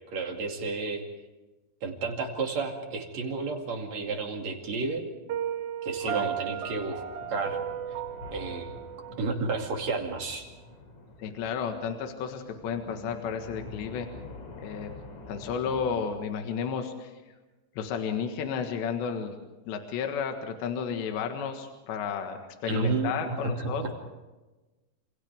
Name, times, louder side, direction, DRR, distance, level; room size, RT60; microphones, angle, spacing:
voice 1, 0.1-1.0 1.8-5.0 5.8-7.0 7.3-7.6 8.3-8.7 9.2-10.5 22.7-23.9, right 4 dB, 45° right, 2 dB, 3.2 m, -31 dB
Piano, 5.3-10.2, right 10 dB, 65° right, 2.1 m, -35 dB
voice 2, 6.0-6.6 11.2-14.1 14.6-14.9 15.3-17.1 17.8-19.3 19.7-23.9, left 6 dB, 75° left, 4 dB, 3.8 m, -32 dB
sound 1, 7.2-16.1, left 3 dB, 45° left, 3.6 m, -47 dB
29.0 x 27.5 x 3.6 m, 1.1 s
omnidirectional pair, 5.2 m